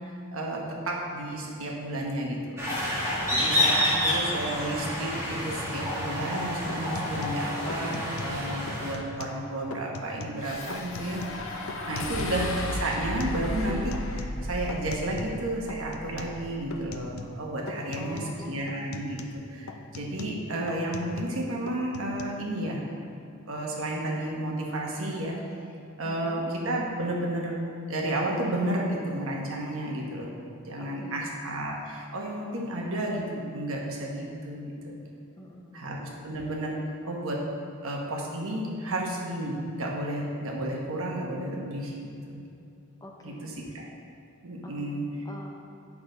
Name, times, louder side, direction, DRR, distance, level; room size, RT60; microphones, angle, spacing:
voice 1, 0.3-2.6 3.3-11.2 11.9-22.8 23.5-25.4 26.0-27.5 27.9-30.3 30.6-35.0 35.7-36.8 37.0-37.4 37.8-42.4 43.2-43.9 44.4-45.1, right 1 dB, 75° right, -1 dB, 1.2 m, -32 dB
sound 1, 2.6-8.9, left 1 dB, 15° right, 1.8 m, -28 dB
voice 2, 3.2-3.7 7.2-7.6 12.0-12.4 18.0-18.6 26.0-26.4 30.8-31.3 35.4-35.8 43.0-43.6 44.6-45.0 45.2-45.5, left 1 dB, 15° left, -1 dB, 0.8 m, -45 dB
sound 2, 6.2-6.4 6.7-8.4 8.7-9.4 9.7-10.4 10.7-12.4 12.7-15.4 15.7-16.4 16.7-17.4 17.7-18.4 18.7-21.4 21.7-22.2, left 3 dB, 90° left, 0.6 m, -41 dB
Spell explosion, 10.4-16.8, left 1 dB, 65° left, 0.9 m, -35 dB
8.6 x 6.0 x 4.0 m, 2.5 s
head